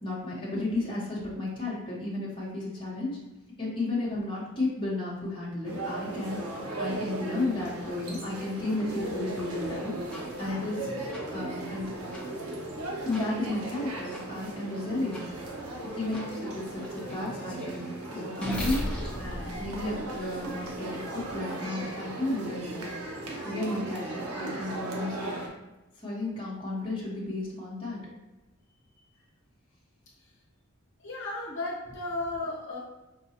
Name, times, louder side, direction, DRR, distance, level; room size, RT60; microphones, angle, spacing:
voice 1, 0.0-3.2 3.6-9.9 10.2-11.9 13.0-15.2 15.9-17.9 18.1-22.9 23.4-25.4 26.0-28.0, left 2 dB, 25° left, -7 dB, 0.9 m, -33 dB
sound 1, 5.6-25.5, right 2 dB, 80° right, 0.7 m, -37 dB
sound 2, 10.1-10.2 11.1-11.2 12.1-12.2 13.1-13.2 14.1-14.2 15.1-15.2 16.1-16.2 16.8-20.7, equal, 5° left, 0.5 m, -37 dB
voice 2, 31.0-32.8, left 2 dB, 55° left, -4 dB, 0.8 m, -34 dB
4.7 x 2.3 x 2.7 m, 1.0 s
head